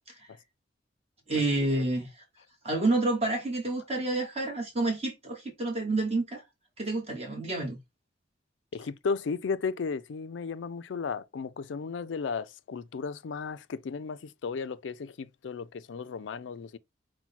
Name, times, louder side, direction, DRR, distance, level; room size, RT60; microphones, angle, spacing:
voice 1, 1.3-2.2 2.6-6.4 6.8-7.8, right 2 dB, 35° right, 1.2 m, -29 dB
voice 2, 8.7-16.8, left 5 dB, 90° left, 0.4 m, -34 dB
5.9 x 2.2 x 4.1 m
head